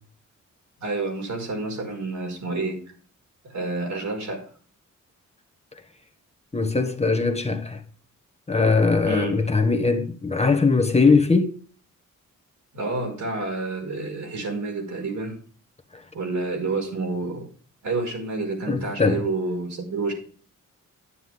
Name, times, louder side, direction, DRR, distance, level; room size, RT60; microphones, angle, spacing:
voice 1, 0.8-2.8 3.4-4.4 9.0-9.4 12.7-15.4 16.1-17.5 17.8-20.1, right 3 dB, 70° right, 5.3 m, -29 dB
voice 2, 6.5-7.8 8.5-11.5 15.9-16.0 18.7-19.2, left 4 dB, 20° left, 1.3 m, -21 dB
11.0 x 9.8 x 3.7 m
wide cardioid pair, 130°, 30 cm